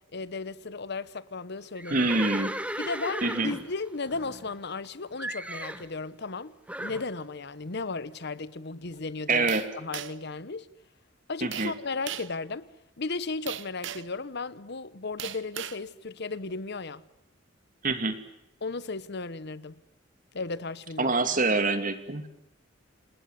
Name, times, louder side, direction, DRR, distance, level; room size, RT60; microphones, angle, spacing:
voice 1, 0.1-2.0 2.8-6.5 6.8-9.5 9.8-10.7 11.3-12.7 13.0-17.0 18.6-19.7 20.3-21.1, left 3 dB, 60° left, 1.0 m, -35 dB
Livestock farm animals working animals, 1.8-4.9 5.2-5.9 6.7-7.1, right 1 dB, 5° right, 1.6 m, -36 dB
voice 2, 1.9-2.5 3.2-3.5 9.3-9.6 11.4-11.7 17.8-18.2 21.0-22.3, right 3 dB, 45° right, 2.7 m, -26 dB
sound 1, 9.5-10.3 11.5-11.8 12.1-12.4 13.5-14.2 15.2-15.8, right 10 dB, 70° right, 1.0 m, -37 dB
28.0 x 19.5 x 9.6 m
head